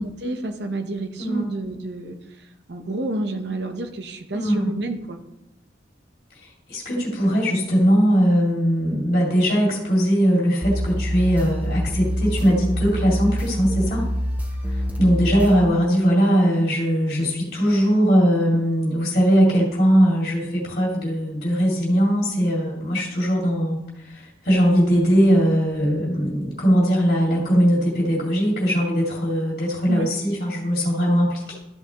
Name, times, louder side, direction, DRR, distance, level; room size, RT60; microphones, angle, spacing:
voice 1, 0.0-5.2 29.9-30.1, right 2 dB, 70° right, 5 dB, 0.9 m, -30 dB
voice 2, 1.2-1.5 4.3-4.7 6.4-14.1 14.6-31.5, equal, 45° left, -4 dB, 2.4 m, -20 dB
sound 1, 10.6-15.6, equal, 10° right, 0.7 m, -26 dB
12.5 x 5.9 x 3.0 m, 0.88 s
head